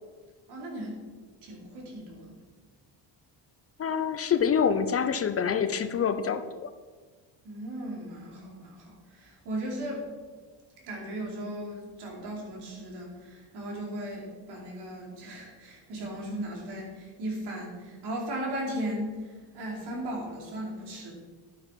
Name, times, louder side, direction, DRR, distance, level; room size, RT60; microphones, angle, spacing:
voice 1, 0.5-0.9 1.4-2.4 7.4-10.0 10.9-21.1, right 1 dB, 65° right, -2 dB, 4.6 m, -37 dB
voice 2, 3.8-6.7, left 7 dB, 35° left, 10 dB, 0.6 m, -26 dB
12.0 x 9.3 x 5.7 m, 1.4 s
cardioid pair, 150°, 42 cm